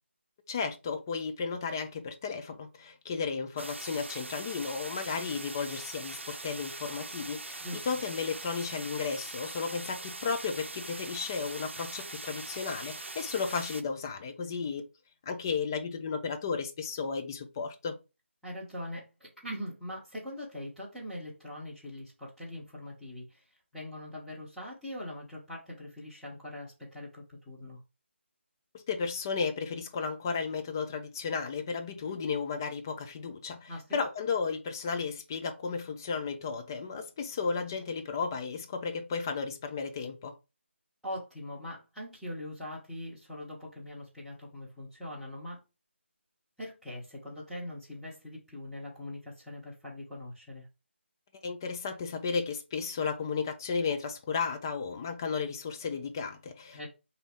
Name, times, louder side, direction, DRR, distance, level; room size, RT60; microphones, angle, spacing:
voice 1, 0.5-14.9 15.3-18.0 28.7-40.3 51.4-56.9, left 5 dB, 20° left, 0.4 m, -34 dB
sound 1, 3.6-13.8, right 3 dB, 70° right, 0.6 m, -42 dB
voice 2, 18.4-23.5 23.7-27.8 33.7-34.0 41.0-45.6 46.6-50.7 56.7-56.9, left 1 dB, ahead, 1.0 m, -42 dB
3.9 x 2.7 x 3.5 m
figure-of-eight pair, 155°, 7 cm